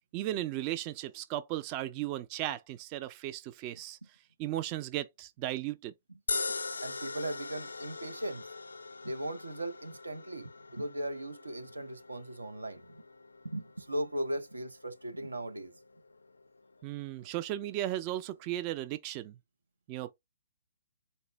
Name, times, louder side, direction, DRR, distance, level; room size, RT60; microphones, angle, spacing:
voice 1, 0.1-4.0 4.4-5.9 16.8-19.4 19.9-20.1, right 14 dB, 30° right, 0.3 m, -36 dB
sound 1, 6.3-18.6, left 4 dB, 80° left, 0.3 m, -43 dB
voice 2, 6.8-8.5 9.0-13.0 13.4-15.7, right 1 dB, 90° right, 0.7 m, -38 dB
4.1 x 2.1 x 3.3 m
figure-of-eight pair, 130°, 0 cm